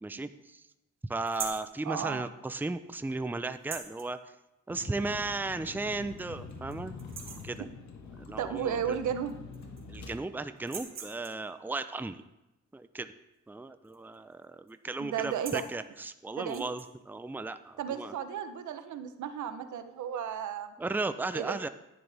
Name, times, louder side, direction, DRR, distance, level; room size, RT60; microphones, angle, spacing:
voice 1, 0.0-0.6 1.1-4.2 4.7-6.9 7.4-7.7 8.1-9.0 9.9-12.2 12.7-13.1 13.5-18.1 20.8-21.7, right 3 dB, 5° right, 11 dB, 0.5 m, -35 dB
sound 1, 1.3-1.7 3.5-4.1 5.4-5.5 6.0-6.1 6.5-6.7 7.0-7.5 8.9-9.0 9.3-10.0 10.6-11.5 13.8-14.2 14.4-14.7 15.2-15.7 16.4-16.9, right 6 dB, 60° right, 1.8 m, -42 dB
voice 2, 1.8-2.2 8.4-9.4 15.0-15.6 16.4-16.7 17.8-20.7 21.3-21.7, right 8 dB, 80° right, 9 dB, 0.9 m, -34 dB
Vehicle, 4.7-10.2, left 4 dB, 70° left, 1.6 m, -45 dB
11.0 x 10.0 x 3.5 m, 0.95 s
cardioid pair, 65°, 29 cm